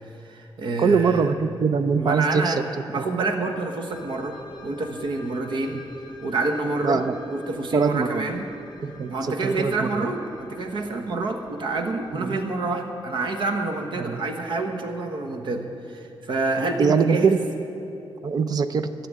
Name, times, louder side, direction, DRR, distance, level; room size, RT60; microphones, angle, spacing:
voice 1, 0.2-1.3 2.0-2.6 2.9-4.4 4.6-5.8 6.2-7.0 7.3-8.5 9.1-17.4, right 3 dB, 60° right, 4 dB, 1.2 m, -27 dB
voice 2, 0.8-2.5 6.8-7.1 7.7-8.3 8.8-10.1 12.2-12.4 14.0-14.2 16.8-17.4 18.2-18.9, right 5 dB, 45° right, 10 dB, 0.6 m, -22 dB
sound 1, 3.9-12.9, left 1 dB, 45° left, 1.5 m, -46 dB
13.5 x 6.9 x 9.5 m, 2.8 s
wide cardioid pair, 160°, 9 cm